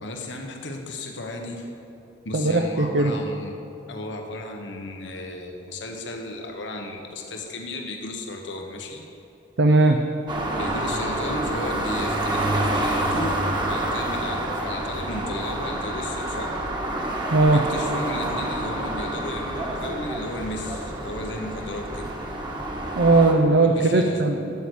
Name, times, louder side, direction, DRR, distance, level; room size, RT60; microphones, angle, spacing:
voice 1, 0.0-1.7 2.2-3.6 3.9-9.0 10.6-13.4 13.7-16.6 17.5-22.1 23.6-24.2, left 2 dB, 85° left, 2 dB, 1.2 m, -34 dB
voice 2, 2.3-3.1 9.6-10.0 17.3-17.6 22.9-24.5, right 2 dB, 65° right, 4 dB, 0.7 m, -18 dB
sound 1, 10.3-23.3, right 1 dB, 25° right, 1.4 m, -28 dB
12.5 x 8.2 x 6.3 m, 3.0 s
head